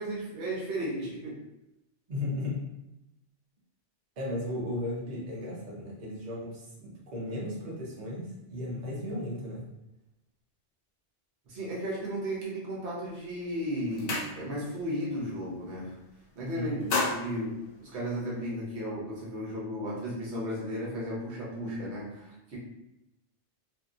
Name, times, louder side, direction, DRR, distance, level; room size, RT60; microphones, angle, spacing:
voice 1, 0.0-1.4 11.5-16.0 16.4-22.6, equal, 65° right, -5 dB, 1.1 m, -34 dB
voice 2, 2.1-2.6 4.2-9.6 16.5-17.0, left 1 dB, 45° right, -5 dB, 0.8 m, -35 dB
sound 1, 13.1-13.3 13.6-14.8 15.1-15.4 15.7-16.3 16.6-18.5, left 3 dB, 60° left, 0.9 m, -34 dB
2.8 x 2.6 x 2.4 m, 0.91 s
omnidirectional pair, 1.2 m